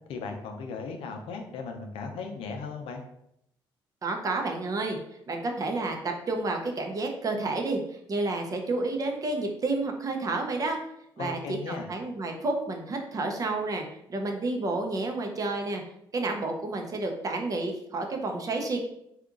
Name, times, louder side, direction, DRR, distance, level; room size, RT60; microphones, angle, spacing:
voice 1, 0.1-3.0 11.2-11.9, left 4 dB, 75° left, 4 dB, 0.6 m, -37 dB
voice 2, 4.0-5.0 5.3-10.8 11.2-13.8 14.1-15.8 16.1-18.8, right 2 dB, 40° right, 3 dB, 0.6 m, -30 dB
2.8 x 2.4 x 3.7 m, 0.77 s
cardioid pair, 100°, 9 cm